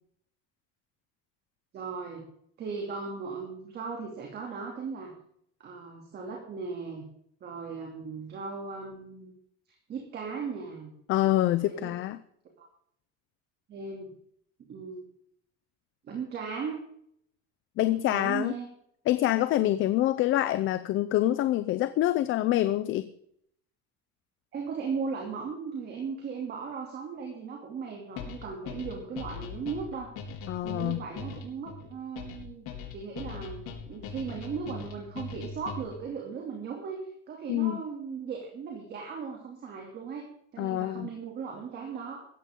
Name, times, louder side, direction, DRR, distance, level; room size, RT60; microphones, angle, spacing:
voice 1, 1.7-2.3 2.6-5.1 5.6-7.0 7.4-9.3 9.9-10.9 11.6-11.9 12.6-12.7 13.7-14.1 14.7-15.1 16.1-16.8 17.8-18.7 24.5-30.1 30.6-32.7 32.9-42.3, right 5 dB, 35° right, 1 dB, 2.9 m, -37 dB
voice 2, 11.1-12.2 17.8-18.6 19.1-23.0 30.5-31.0 37.5-37.8 40.6-41.1, left 14 dB, 40° left, 12 dB, 0.7 m, -26 dB
sound 1, 28.2-36.1, left 5 dB, 65° left, 4.2 m, -40 dB
16.5 x 14.0 x 3.8 m, 0.68 s
cardioid pair, 175°, 30 cm